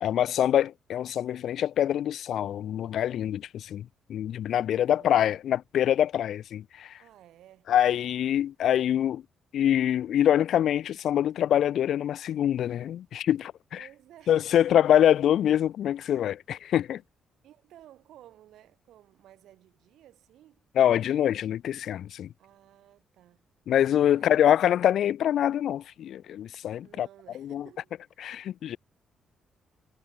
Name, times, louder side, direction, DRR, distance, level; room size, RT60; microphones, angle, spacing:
voice 1, 0.0-7.0 7.7-9.2 9.5-13.8 14.3-17.0 20.8-22.3 23.7-27.1 27.4-27.6 28.2-28.8, left 10 dB, 60° left, 0.3 m, -25 dB
voice 2, 4.7-5.4 7.0-7.7 13.7-14.8 17.4-20.6 22.4-23.4 24.1-24.4 26.8-28.2, right 12 dB, 80° right, 4.9 m, -55 dB
cardioid pair, 175°, 0 cm